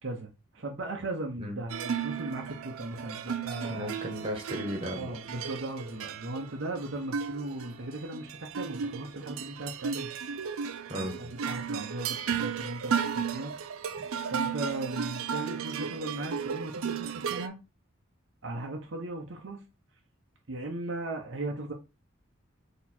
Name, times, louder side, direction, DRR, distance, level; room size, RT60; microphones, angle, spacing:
voice 1, 0.0-3.8 5.0-10.1 11.0-13.7 14.2-17.6 18.4-19.6 20.5-21.7, right 2 dB, 65° right, 0.8 m, -37 dB
sound 1, 1.7-17.5, right 7 dB, 90° right, 0.5 m, -34 dB
voice 2, 3.7-5.1 10.9-11.2, equal, 25° right, 1.3 m, -35 dB
4.2 x 3.0 x 4.2 m
head